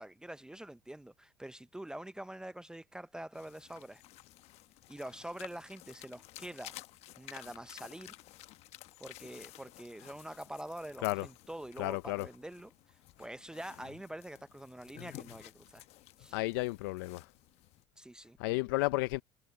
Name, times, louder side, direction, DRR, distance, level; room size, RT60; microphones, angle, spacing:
voice 1, 0.0-4.0 4.9-6.7 7.2-8.1 9.0-12.7 13.2-15.8 16.2-16.4 18.0-18.4, right 1 dB, 5° right, 0.6 m, -45 dB
sound 1, 3.3-17.8, left 17 dB, 70° left, 1.1 m, -53 dB
voice 2, 11.8-12.3 16.3-17.3 18.4-19.2, left 21 dB, 90° left, 0.5 m, -32 dB
supercardioid pair, 95°, 11 cm